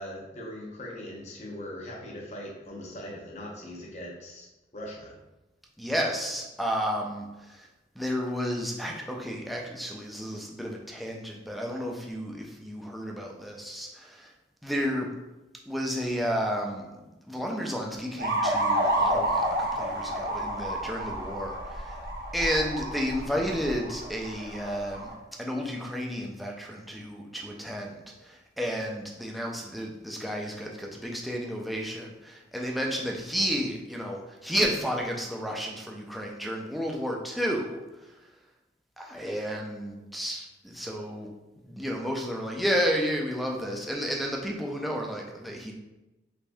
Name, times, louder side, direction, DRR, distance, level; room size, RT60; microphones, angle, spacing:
voice 1, 0.0-4.5 4.7-5.2, left 1 dB, 40° left, -1 dB, 0.7 m, -40 dB
voice 2, 5.8-7.7 8.0-14.3 14.6-15.1 15.7-22.0 22.3-25.1 25.4-38.1 39.0-41.3 41.7-45.7, equal, ahead, -1 dB, 0.3 m, -32 dB
sound 1, 18.2-25.1, right 1 dB, 55° right, 0.8 m, -30 dB
3.4 x 3.3 x 2.5 m, 1.0 s
head